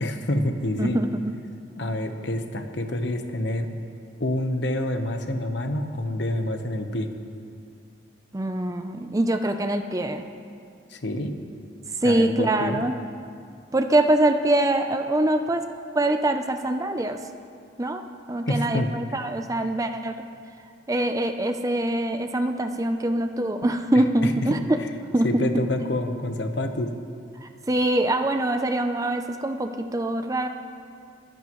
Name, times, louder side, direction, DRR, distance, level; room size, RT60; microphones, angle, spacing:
voice 1, 0.0-1.0 1.7-3.7 4.2-7.1 10.9-11.3 12.0-12.8 18.5-18.9 24.2-24.9 25.2-26.9, left 1 dB, 60° left, 6 dB, 1.0 m, -27 dB
voice 2, 0.8-1.3 8.3-10.2 12.0-12.9 13.7-15.6 16.0-17.2 17.8-18.0 18.3-20.2 20.9-24.8 25.1-25.5 27.4-30.5, right 1 dB, 15° right, 6 dB, 0.5 m, -24 dB
22.5 x 12.0 x 3.1 m, 2.3 s
head